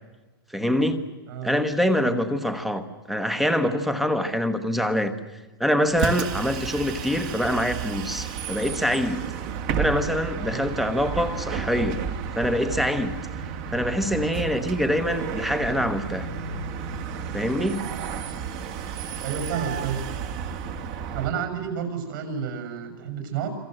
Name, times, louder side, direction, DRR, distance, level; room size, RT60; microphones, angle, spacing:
voice 1, 0.5-1.0 1.4-5.1 5.6-9.2 9.8-13.1 13.7-16.3 17.3-17.9, equal, ahead, 1.2 m, -25 dB
Bus, 5.9-21.3, right 6 dB, 30° right, 1.8 m, -32 dB
voice 2, 19.2-20.0 21.1-23.5, right 7 dB, 55° right, 7.1 m, -30 dB
27.0 x 26.0 x 7.8 m
supercardioid pair, 170°, 13 cm